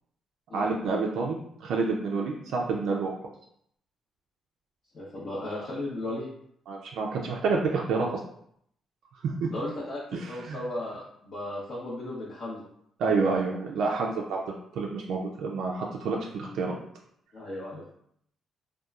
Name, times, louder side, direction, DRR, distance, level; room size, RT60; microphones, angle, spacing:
voice 1, 0.5-3.1 6.7-8.2 9.2-9.5 10.1-10.6 13.0-14.4 14.8-16.8, right 4 dB, 80° right, -1 dB, 0.3 m, -28 dB
voice 2, 4.9-6.3 9.5-10.0 10.3-12.6 16.4-16.6 17.3-17.9, left 1 dB, 55° left, -8 dB, 0.7 m, -35 dB
2.9 x 2.2 x 2.3 m, 0.69 s
cardioid pair, 90°, 0 cm